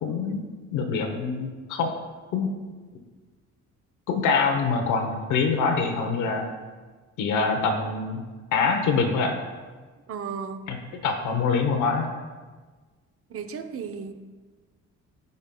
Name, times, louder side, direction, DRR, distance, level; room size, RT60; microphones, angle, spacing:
voice 1, 0.0-0.4 0.7-1.9 2.3-2.5 4.1-6.5 7.2-8.2 8.5-9.4 10.7-10.8 11.0-12.1, left 5 dB, 80° left, 3 dB, 0.9 m, -24 dB
voice 2, 10.1-10.6 13.3-14.1, right 6 dB, 50° right, 7 dB, 0.7 m, -34 dB
14.0 x 5.3 x 2.3 m, 1.4 s
cardioid pair, 90°, 30 cm